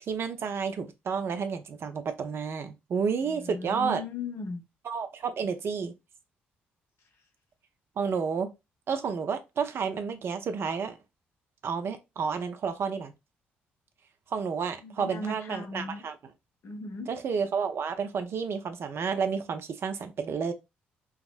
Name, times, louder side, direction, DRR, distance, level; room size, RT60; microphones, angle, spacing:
voice 1, 0.1-4.0 4.8-5.9 8.0-8.5 8.9-11.0 11.6-13.1 14.3-16.1 17.1-20.5, right 6 dB, 50° right, 0.5 m, -31 dB
voice 2, 3.2-4.6 14.8-16.0 16.6-17.1, left 2 dB, 55° left, 0.7 m, -37 dB
3.5 x 2.0 x 2.4 m
hypercardioid pair, 45°, 5 cm